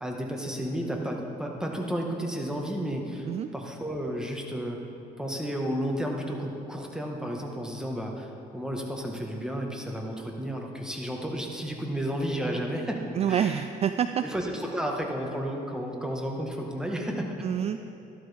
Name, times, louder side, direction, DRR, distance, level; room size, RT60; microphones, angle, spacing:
voice 1, 0.0-3.3 3.5-4.8 5.2-13.5 14.2-17.3, equal, 5° right, 0 dB, 1.5 m, -32 dB
voice 2, 13.1-14.2 17.4-17.8, right 9 dB, 40° right, 9 dB, 0.3 m, -27 dB
13.0 x 12.0 x 3.5 m, 2.8 s
cardioid pair, 110°, 17 cm